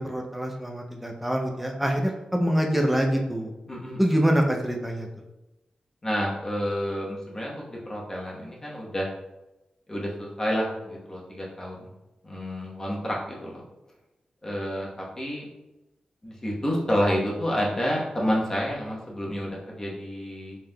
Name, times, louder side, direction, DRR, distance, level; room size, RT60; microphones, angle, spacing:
voice 1, 0.0-3.5 4.0-5.1, equal, 5° right, 1 dB, 0.6 m, -25 dB
voice 2, 3.7-4.0 6.0-9.1 9.9-11.9 12.2-13.6 14.4-15.5 16.2-20.6, equal, 25° left, -4 dB, 1.1 m, -29 dB
5.5 x 3.4 x 2.3 m, 0.98 s
wide cardioid pair, 115°, 2 cm